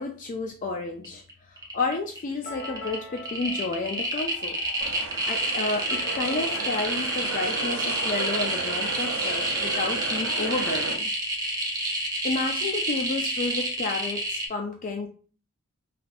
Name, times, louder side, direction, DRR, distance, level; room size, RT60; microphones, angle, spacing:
voice 1, 0.0-4.6 5.3-11.1 12.2-15.1, left 3 dB, 35° left, 3 dB, 0.3 m, -31 dB
sound 1, 1.0-1.3 1.6-2.2 2.5-14.4, right 1 dB, 15° right, 0.6 m, -28 dB
sound 2, 2.4-8.2, left 2 dB, 55° left, 1.1 m, -44 dB
sound 3, 4.8-11.0, right 4 dB, 80° right, 0.6 m, -34 dB
3.3 x 2.6 x 2.4 m, 0.39 s
head